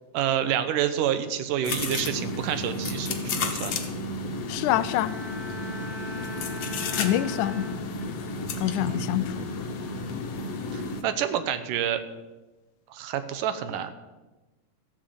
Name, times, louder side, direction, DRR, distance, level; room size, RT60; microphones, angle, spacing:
voice 1, 0.1-3.8 6.7-7.0 8.8-9.5 10.7-12.0 12.9-13.9, right 10 dB, 80° right, 10 dB, 2.5 m, -29 dB
sound 1, 1.6-11.0, left 3 dB, 60° left, 2.1 m, -32 dB
voice 2, 4.5-5.1 6.9-7.7 8.6-9.5, left 14 dB, 80° left, 15 dB, 1.9 m, -26 dB
Bowed string instrument, 4.7-8.3 8.8-9.1, left 1 dB, 40° right, 1.5 m, -41 dB
14.0 x 8.1 x 8.0 m, 1.1 s
omnidirectional pair, 3.7 m